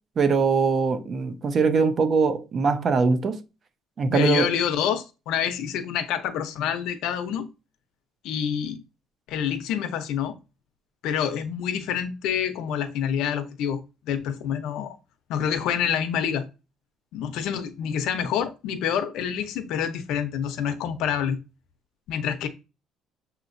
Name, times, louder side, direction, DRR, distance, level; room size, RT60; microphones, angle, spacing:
voice 1, 0.2-3.4 4.0-4.5, right 5 dB, 40° right, 0.6 m, -22 dB
voice 2, 4.1-7.5 8.2-8.8 9.3-10.4 11.0-13.8 14.1-15.0 15.3-16.4 17.1-21.4 22.1-22.5, left 8 dB, 80° left, 0.7 m, -27 dB
6.6 x 2.9 x 2.6 m
cardioid pair, 140°, 0 cm